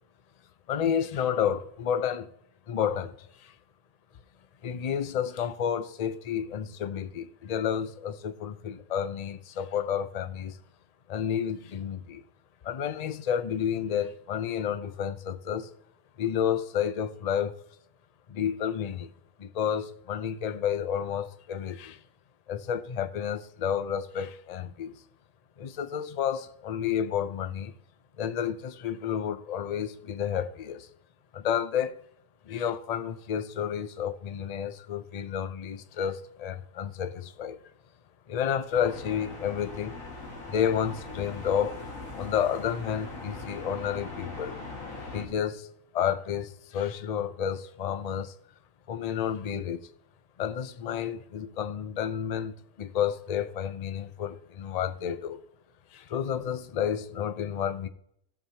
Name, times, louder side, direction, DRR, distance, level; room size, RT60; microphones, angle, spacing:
voice 1, 0.7-2.3 2.7-3.5 4.6-10.6 11.1-12.2 12.6-15.7 16.2-17.6 18.3-19.1 19.4-22.0 22.5-25.0 25.6-27.7 28.2-30.9 31.3-32.0 32.4-37.6 38.3-40.0 40.5-41.8 42.1-44.6 45.0-45.7 45.9-48.3 48.9-49.9 50.4-55.4 55.9-57.9, left 8 dB, 55° left, 0.4 m, -30 dB
sound 1, 38.7-45.3, left 3 dB, 70° left, 2.3 m, -41 dB
16.0 x 7.2 x 2.8 m
omnidirectional pair, 1.4 m